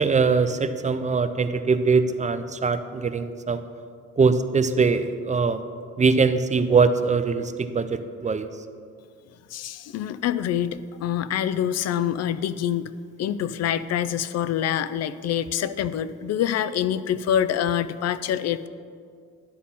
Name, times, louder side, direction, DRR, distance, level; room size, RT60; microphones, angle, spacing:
voice 1, 0.0-3.6 4.2-5.6 6.0-8.5, right 4 dB, 25° right, 10 dB, 0.5 m, -22 dB
voice 2, 9.5-12.9 13.2-18.7, left 10 dB, 60° left, 15 dB, 0.4 m, -26 dB
11.5 x 4.2 x 5.5 m, 2.2 s
cardioid pair, 90°, 30 cm